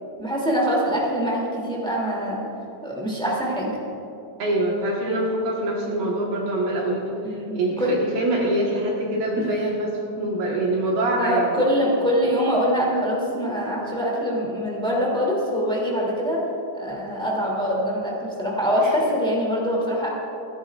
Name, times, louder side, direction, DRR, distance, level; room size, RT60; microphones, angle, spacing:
voice 1, 0.2-2.4 2.8-3.8 7.2-8.0 11.2-16.4 16.7-20.1, equal, ahead, -4 dB, 1.2 m, -24 dB
voice 2, 4.4-7.0 7.5-11.6, right 1 dB, 65° right, -3 dB, 2.9 m, -24 dB
28.5 x 10.5 x 2.4 m, 2.8 s
omnidirectional pair, 5.0 m